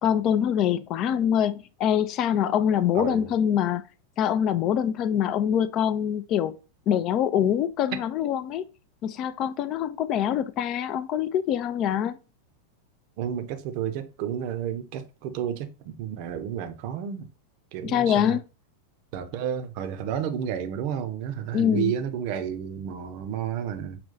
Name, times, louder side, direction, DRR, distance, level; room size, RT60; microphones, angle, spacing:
voice 1, 0.0-3.8 4.2-6.6 6.9-8.6 9.0-12.2 17.8-18.4 21.5-21.9, left 9 dB, 35° left, 0.4 m, -24 dB
voice 2, 2.9-3.3 13.2-17.3 17.7-18.4 19.1-24.0, right 9 dB, 45° right, 0.6 m, -31 dB
5.7 x 2.3 x 3.8 m
figure-of-eight pair, 90°, 0 cm